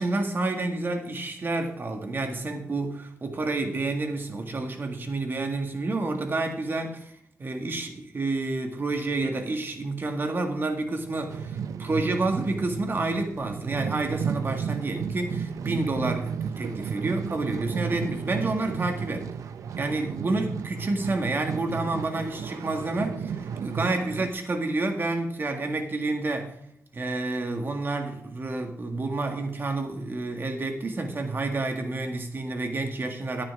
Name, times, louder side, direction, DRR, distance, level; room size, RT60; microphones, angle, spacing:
voice 1, 0.0-7.1 7.4-19.3 19.7-26.5 26.9-33.4, right 2 dB, 40° right, 5 dB, 1.9 m, -29 dB
sound 1, 11.0-24.3, right 7 dB, 85° right, 0.6 m, -33 dB
10.5 x 9.3 x 4.6 m, 0.72 s
wide cardioid pair, 110°, 5 cm